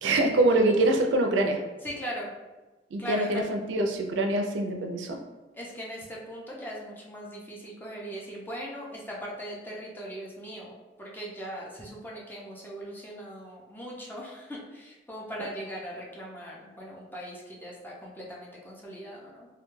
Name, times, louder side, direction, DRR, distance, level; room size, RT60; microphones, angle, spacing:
voice 1, 0.0-1.6 2.9-5.2, right 2 dB, 80° right, 3 dB, 0.4 m, -24 dB
voice 2, 1.8-2.3 3.0-3.4 5.5-10.7 11.0-19.5, equal, 10° left, -3 dB, 0.4 m, -39 dB
2.2 x 2.2 x 3.0 m, 1.2 s
head